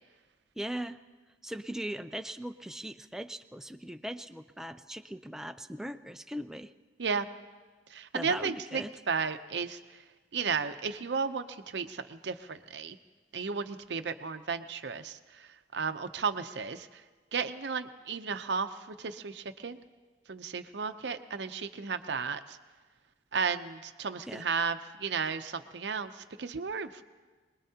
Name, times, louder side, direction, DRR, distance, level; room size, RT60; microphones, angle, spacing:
voice 1, 0.6-1.0 1.4-6.7 8.1-8.9 24.3-24.4, right 1 dB, 5° right, 9 dB, 0.4 m, -39 dB
voice 2, 7.9-10.0 10.3-13.0 13.3-17.0 17.3-19.8 20.3-22.6 23.3-27.0, right 5 dB, 70° right, 9 dB, 0.7 m, -34 dB
25.0 x 20.5 x 2.8 m, 1.4 s
head